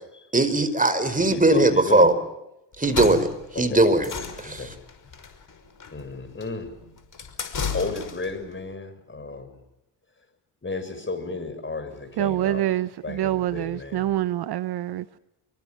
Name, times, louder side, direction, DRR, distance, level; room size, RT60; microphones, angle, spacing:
voice 1, 0.3-2.1 2.8-3.3 3.6-4.1 4.4-4.6, right 2 dB, 15° right, 11 dB, 4.9 m, -19 dB
voice 2, 1.3-2.1 3.5-3.9 4.4-4.7 5.9-6.7 7.7-9.6 10.6-12.7 13.0-14.1, left 3 dB, 25° left, 10 dB, 7.1 m, -33 dB
sound 1, 2.7-8.4, left 6 dB, 40° left, 5.7 m, -34 dB
voice 3, 12.2-15.2, right 13 dB, 55° right, 15 dB, 1.1 m, -26 dB
27.5 x 24.0 x 7.5 m, 0.89 s
hypercardioid pair, 55°, 47 cm